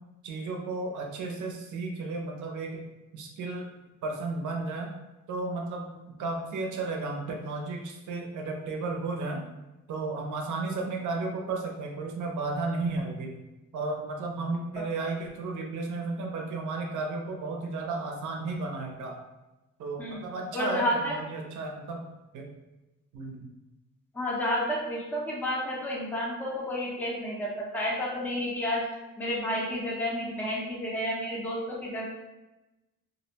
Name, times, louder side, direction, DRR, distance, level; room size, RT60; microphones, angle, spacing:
voice 1, 0.2-2.9 3.1-3.7 4.0-4.9 5.3-5.9 6.2-9.4 9.9-13.4 13.7-19.2 19.8-22.0 22.3-22.5 23.1-23.4, right 3 dB, 70° right, 1 dB, 0.5 m, -33 dB
voice 2, 20.5-21.1 24.1-28.9 29.2-32.0, left 1 dB, 5° left, -4 dB, 0.4 m, -31 dB
2.4 x 2.1 x 2.7 m, 1.0 s
wide cardioid pair, 170°, 31 cm